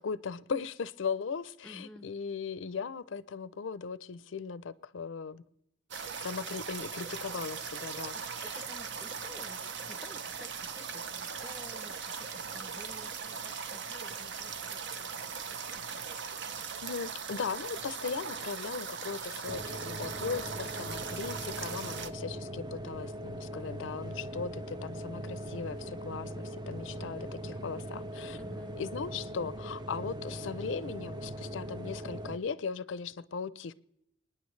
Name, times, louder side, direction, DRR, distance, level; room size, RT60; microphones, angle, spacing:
voice 1, 0.0-5.4 5.9-8.5 16.8-28.4 28.8-33.7, left 5 dB, 70° left, 18 dB, 0.5 m, -38 dB
voice 2, 1.6-2.1 8.1-16.2 28.3-28.8, left 1 dB, 5° left, 11 dB, 0.7 m, -53 dB
sound 1, 5.9-22.1, right 6 dB, 60° right, 0.7 m, -39 dB
sound 2, 19.5-32.4, right 1 dB, 20° right, 0.4 m, -40 dB
27.5 x 9.8 x 3.2 m, 0.77 s
head